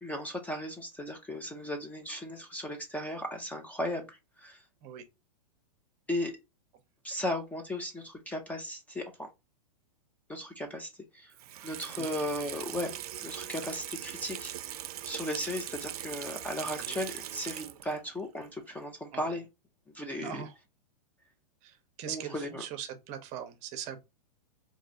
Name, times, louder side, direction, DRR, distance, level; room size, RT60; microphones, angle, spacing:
voice 1, 0.0-4.6 6.1-6.3 7.0-9.3 10.3-11.3 11.6-12.9 13.2-14.5 15.1-19.4 19.9-20.4 22.1-22.6, left 1 dB, 10° left, 0.4 m, -36 dB
Water tap faucet / Sink (filling or washing), 11.3-18.1 18.4-18.5, right 12 dB, 70° right, 0.4 m, -40 dB
voice 2, 16.6-17.0 19.1-19.4 20.2-20.5 21.6-24.0, right 9 dB, 35° right, 0.7 m, -41 dB
3.9 x 2.6 x 2.6 m
hypercardioid pair, 125°, 20 cm